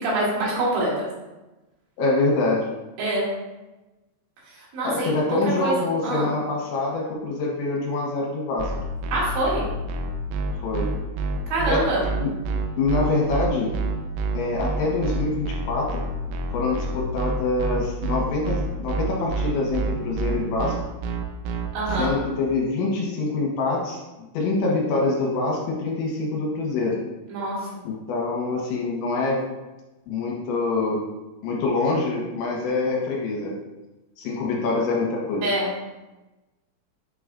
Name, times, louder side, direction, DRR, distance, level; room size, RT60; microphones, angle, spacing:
voice 1, 0.0-1.1 3.0-3.3 4.4-5.7 6.0-6.3 9.1-9.6 11.5-12.0 21.7-22.1 27.3-27.7 35.4-35.9, right 1 dB, 70° right, -7 dB, 4.4 m, -25 dB
voice 2, 2.0-2.7 4.8-8.7 10.6-10.9 11.6-11.9 12.2-12.3 12.8-13.7 14.3-16.0 16.5-20.8 22.0-27.0 27.8-29.4 30.1-31.1 31.4-33.5 34.2-35.4, left 3 dB, 75° left, -2 dB, 3.2 m, -25 dB
sound 1, 8.6-22.1, right 4 dB, 85° right, 3.0 m, -27 dB
9.6 x 4.9 x 2.5 m, 1.1 s
omnidirectional pair, 5.6 m